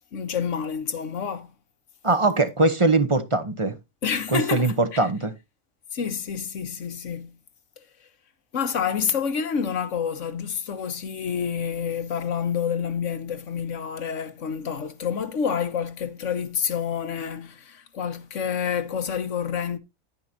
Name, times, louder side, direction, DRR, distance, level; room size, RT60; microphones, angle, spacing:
voice 1, 0.1-1.5 4.0-5.1 5.9-7.3 8.5-19.8, left 7 dB, 65° left, 1.3 m, -28 dB
voice 2, 2.0-3.8 4.3-5.3, right 3 dB, 25° right, 0.8 m, -21 dB
10.0 x 9.4 x 2.7 m
omnidirectional pair, 1.4 m